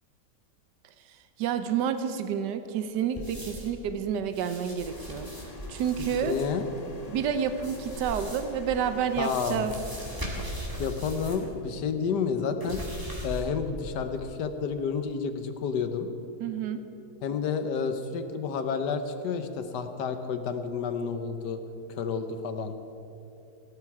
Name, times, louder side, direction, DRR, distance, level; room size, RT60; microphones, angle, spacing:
voice 1, 1.4-5.3 5.7-6.4 7.1-9.8 16.4-16.8, right 8 dB, 85° right, 9 dB, 1.3 m, -29 dB
sound 1, 3.1-3.8 4.2-6.5 7.5-8.6 9.1-11.5 11.8-11.9 12.6-13.7 14.1-14.2, equal, 10° right, 2.2 m, -39 dB
sound 2, 4.8-10.4, left 2 dB, 30° left, 0.8 m, -45 dB
voice 2, 6.0-6.7 9.2-9.7 10.8-12.8 13.2-16.1 17.2-21.6 21.9-22.7, left 6 dB, 80° left, 8 dB, 1.5 m, -30 dB
17.5 x 12.0 x 4.8 m, 2.9 s
omnidirectional pair, 1.8 m